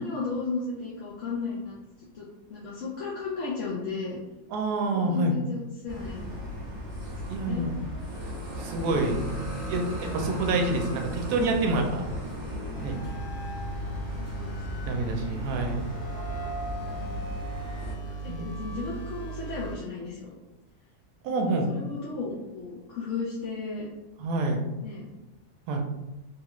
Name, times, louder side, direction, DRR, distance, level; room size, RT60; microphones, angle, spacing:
voice 1, 0.0-4.2 4.9-6.4 7.2-7.7 9.4-9.7 14.2-15.3 16.7-17.1 18.2-20.3 21.4-23.9 24.8-25.1, left 4 dB, 65° left, -6 dB, 0.8 m, -35 dB
voice 2, 4.5-5.4 7.3-7.7 8.6-9.2 9.7-12.1 12.8-13.0 14.8-15.8 18.3-18.5 21.2-21.7 24.2-24.6 25.7-25.8, right 2 dB, 75° right, 3 dB, 1.0 m, -27 dB
sound 1, 5.9-17.9, equal, 40° right, 1.3 m, -36 dB
sound 2, 12.7-19.8, right 3 dB, 85° left, 1.2 m, -37 dB
3.2 x 2.4 x 2.9 m, 1.0 s
omnidirectional pair, 1.7 m